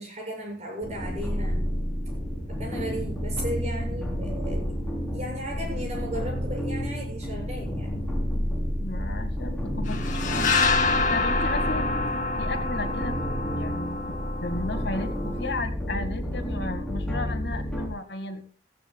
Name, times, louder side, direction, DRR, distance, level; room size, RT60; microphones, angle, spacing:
voice 1, 0.0-1.7 2.5-4.7 5.1-7.9, equal, 35° right, 1 dB, 7.2 m, -35 dB
sound 1, 0.8-17.9, equal, 5° left, 3.9 m, -30 dB
voice 2, 8.8-11.9 12.3-13.2 13.4-14.1 14.4-18.4, left 2 dB, 60° left, 4 dB, 2.2 m, -34 dB
sound 2, 9.9-15.5, left 4 dB, 40° left, 2.1 m, -28 dB
18.0 x 15.5 x 2.4 m, 0.40 s
head